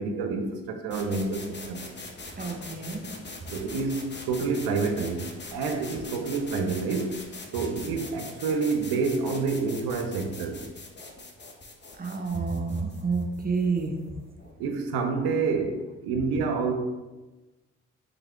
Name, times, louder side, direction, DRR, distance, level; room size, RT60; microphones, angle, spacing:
voice 1, 0.0-1.8 3.5-7.2 7.5-10.6 14.6-16.7, right 4 dB, 85° right, 5 dB, 0.6 m, -28 dB
sound 1, 0.9-14.6, left 3 dB, 30° left, 0.9 m, -43 dB
voice 2, 2.4-3.0 12.0-14.0, right 4 dB, 25° right, 3 dB, 0.8 m, -29 dB
3.8 x 3.4 x 3.6 m, 1.1 s
hypercardioid pair, 50°, 36 cm